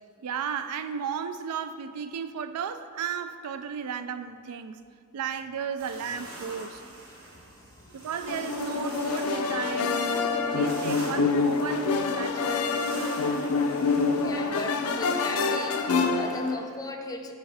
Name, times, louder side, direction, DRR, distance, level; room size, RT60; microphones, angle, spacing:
voice 1, 0.2-4.8 5.1-6.8 7.9-12.7, right 7 dB, 90° right, 0.4 m, -34 dB
sound 1, 5.8-14.4, right 1 dB, 70° right, 1.5 m, -44 dB
voice 2, 7.1-8.1 14.2-17.3, left 2 dB, 15° left, 0.4 m, -39 dB
sound 2, 8.3-16.6, left 4 dB, 90° left, 0.5 m, -26 dB
9.1 x 4.3 x 3.4 m
head